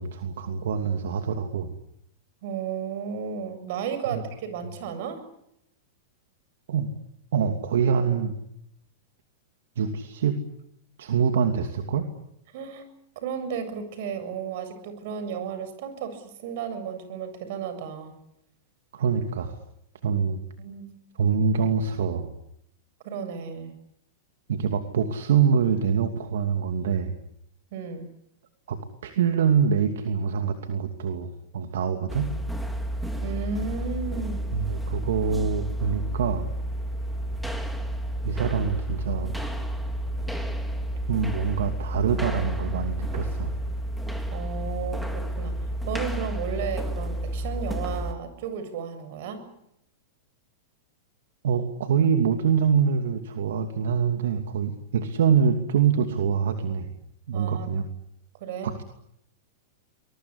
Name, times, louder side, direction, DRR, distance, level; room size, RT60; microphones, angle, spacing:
voice 1, 0.0-1.7 4.1-4.2 6.7-6.9 7.3-8.3 9.8-10.4 11.0-12.1 18.9-19.6 20.0-20.4 21.2-22.3 24.5-27.1 28.7-32.3 34.5-36.5 38.2-39.3 41.1-43.6 51.4-56.9 57.3-57.8 58.6-58.8, right 6 dB, 80° right, 6 dB, 2.7 m, -25 dB
voice 2, 2.4-5.2 12.5-12.8 13.2-18.1 20.6-21.0 23.0-23.7 27.7-28.1 33.2-34.5 44.3-45.6 45.9-49.5 57.3-57.7 58.4-58.7, right 6 dB, 60° right, 11 dB, 7.5 m, -33 dB
sound 1, 32.1-48.1, right 1 dB, ahead, 3.4 m, -31 dB
25.0 x 22.5 x 9.9 m, 0.78 s
hypercardioid pair, 135°, 0 cm